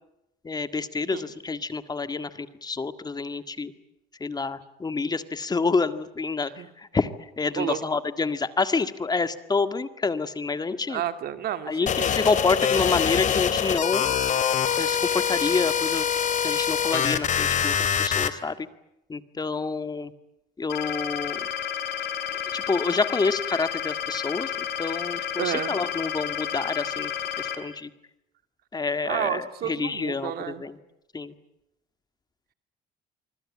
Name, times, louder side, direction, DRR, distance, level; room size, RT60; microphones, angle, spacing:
voice 1, 0.4-3.7 4.2-11.0 11.7-14.2 14.8-18.7 19.1-20.1 20.6-21.5 22.3-27.1 27.4-27.9 28.7-30.8 31.1-31.3, left 4 dB, 25° left, 11 dB, 1.9 m, -28 dB
voice 2, 10.9-12.3 25.4-25.8 29.1-30.6, right 10 dB, 65° right, 9 dB, 2.6 m, -31 dB
sound 1, 11.9-18.3, left 8 dB, 45° left, 2.7 m, -24 dB
sound 2, 20.7-27.6, left 9 dB, 75° left, 4.1 m, -31 dB
26.0 x 24.5 x 8.7 m, 0.86 s
cardioid pair, 110°, 17 cm